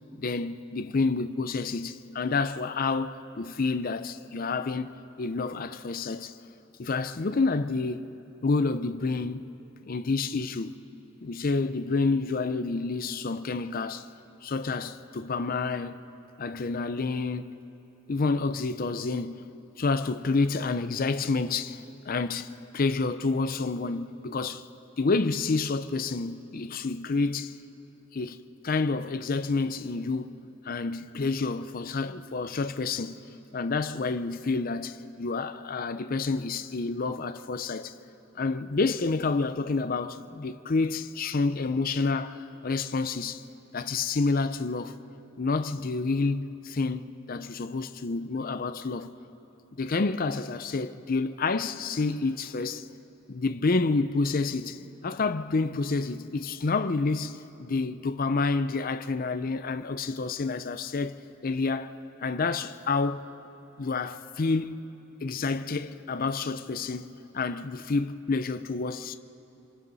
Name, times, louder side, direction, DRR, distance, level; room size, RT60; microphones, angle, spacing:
voice 1, 0.2-4.9 5.2-6.3 6.8-8.1 8.4-9.5 9.8-10.7 11.2-14.1 14.4-16.0 16.4-17.5 18.1-19.4 19.8-24.7 25.0-27.6 28.1-30.3 30.6-33.2 33.5-37.9 38.4-43.4 43.7-45.0 45.4-49.1 49.7-52.8 53.3-63.2 63.8-64.8 65.2-69.1, left 3 dB, 45° left, 0.5 m, -29 dB
27.5 x 26.0 x 4.1 m
head